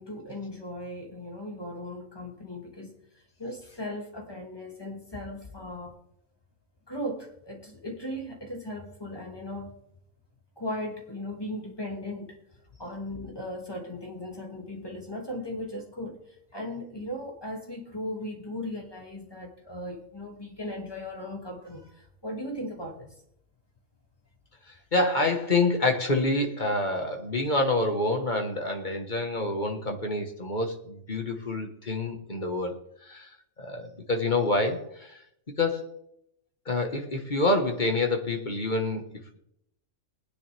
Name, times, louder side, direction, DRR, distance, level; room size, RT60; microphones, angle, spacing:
voice 1, 0.0-2.9 3.4-5.9 6.9-9.7 10.6-12.4 12.8-16.2 16.5-23.1, left 1 dB, 15° left, 2.5 m, -37 dB
voice 2, 24.9-33.3 33.6-35.2 35.5-36.0 36.6-39.0, left 2 dB, 35° left, 1.7 m, -27 dB
20.5 x 10.0 x 3.5 m
omnidirectional pair, 1.4 m